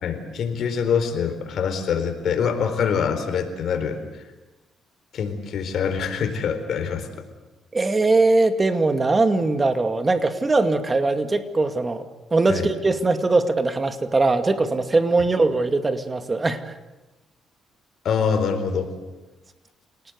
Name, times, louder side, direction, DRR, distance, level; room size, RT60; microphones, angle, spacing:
voice 1, 0.0-4.0 5.1-7.1 12.5-12.7 18.0-18.9, left 6 dB, 65° left, 7 dB, 4.2 m, -24 dB
voice 2, 7.7-12.0 12.3-16.7, right 3 dB, 25° right, 8 dB, 2.3 m, -21 dB
28.0 x 19.0 x 8.2 m, 1.1 s
cardioid pair, 90°, 0 cm